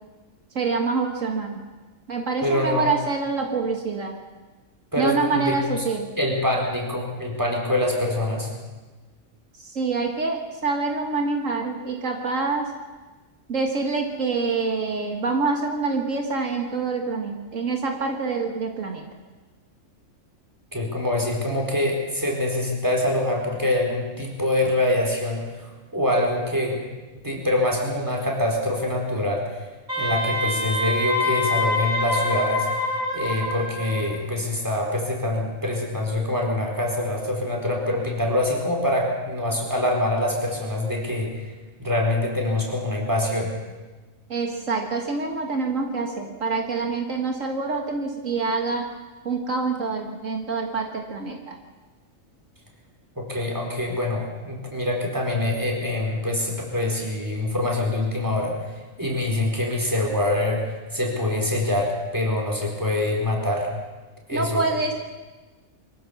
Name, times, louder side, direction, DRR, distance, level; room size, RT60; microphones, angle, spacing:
voice 1, 0.5-1.6 2.1-4.2 5.0-6.1 9.6-12.7 13.5-19.1 44.3-48.9 49.3-51.6 64.3-64.9, right 4 dB, 75° right, 2 dB, 2.1 m, -26 dB
voice 2, 2.4-2.9 4.9-5.8 6.2-8.5 20.7-26.8 27.2-29.4 30.0-32.7 33.1-41.3 41.8-43.5 53.2-58.6 59.0-63.7 64.3-64.6, left 1 dB, 15° right, -1 dB, 4.5 m, -25 dB
Wind instrument woodwind instrument, 29.9-34.1, left 2 dB, 35° right, 5.5 m, -25 dB
23.5 x 15.5 x 7.1 m, 1.3 s
omnidirectional pair, 1.4 m